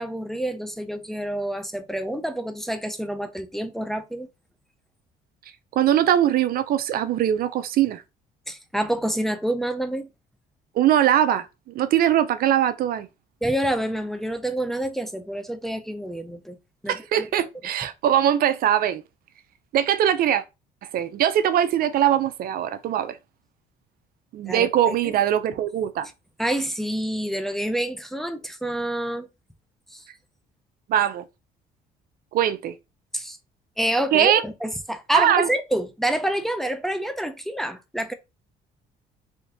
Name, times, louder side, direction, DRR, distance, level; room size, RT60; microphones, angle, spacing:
voice 1, 0.0-4.3 8.5-10.1 13.4-16.6 16.8-17.3 24.5-25.1 26.4-29.3 29.9-30.0 33.1-33.4 33.8-38.1, right 1 dB, ahead, 0.5 m, -27 dB
voice 2, 5.7-8.0 10.8-11.5 11.7-13.1 16.9-19.0 19.7-20.4 20.9-23.2 24.3-26.1 30.9-31.2 32.3-32.7 34.1-34.4 35.1-35.5, right 10 dB, 60° right, 0.5 m, -21 dB
3.7 x 2.6 x 3.9 m
cardioid pair, 110°, 17 cm